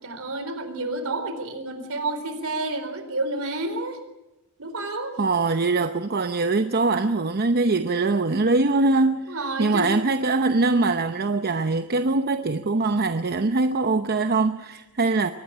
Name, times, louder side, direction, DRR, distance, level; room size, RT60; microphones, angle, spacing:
voice 1, 0.0-4.0 4.6-5.1 9.3-9.9, right 2 dB, 70° right, 4.2 m, -30 dB
voice 2, 5.2-15.3, right 3 dB, 45° right, 0.8 m, -22 dB
23.5 x 18.5 x 8.8 m
head